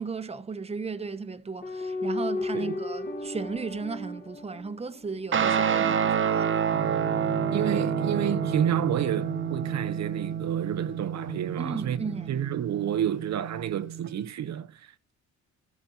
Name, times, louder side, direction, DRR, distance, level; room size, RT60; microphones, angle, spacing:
voice 1, 0.0-6.5 11.6-12.4, right 4 dB, 20° right, 1.1 m, -35 dB
sound 1, 1.6-5.3 6.7-10.5 11.3-12.5, left 2 dB, 30° left, 2.3 m, -35 dB
Guitar, 5.3-14.1, right 8 dB, 40° right, 1.3 m, -29 dB
voice 2, 7.5-12.0 12.3-15.1, right 10 dB, 65° right, 0.9 m, -30 dB
12.5 x 5.4 x 8.4 m
cardioid pair, 90°, 30 cm